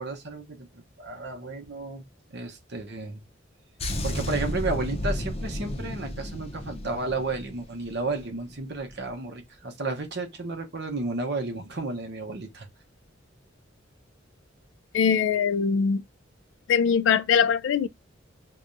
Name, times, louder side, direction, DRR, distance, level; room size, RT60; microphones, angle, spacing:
voice 1, 0.0-2.1 2.3-3.2 4.0-12.7, right 3 dB, 60° right, 1.0 m, -32 dB
sound 1, 3.8-8.4 8.6-8.9, left 1 dB, 30° left, 0.7 m, -32 dB
voice 2, 14.9-16.0 16.7-17.9, left 7 dB, 70° left, 0.3 m, -22 dB
4.7 x 2.3 x 2.6 m
head